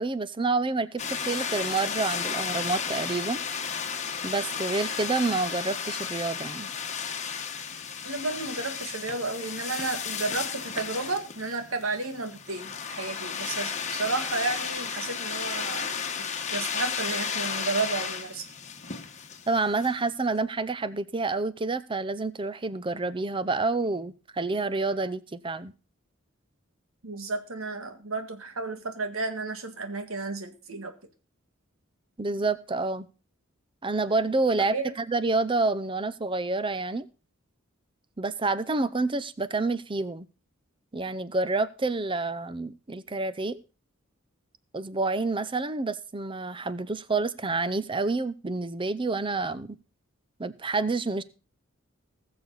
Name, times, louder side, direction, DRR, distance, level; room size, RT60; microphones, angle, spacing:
voice 1, 0.0-3.4 4.2-6.7 19.5-25.7 32.2-33.1 33.8-34.8 35.1-37.1 38.2-40.3 40.9-43.6 44.7-49.8 50.4-51.2, right 3 dB, 25° right, 15 dB, 0.7 m, -28 dB
sound 1, 1.0-19.9, left 6 dB, 35° left, 1.3 m, -33 dB
voice 2, 8.0-15.9 16.5-18.4 27.0-30.9 34.7-34.9, right 3 dB, 85° right, 7 dB, 1.9 m, -32 dB
20.0 x 6.9 x 4.0 m, 0.32 s
head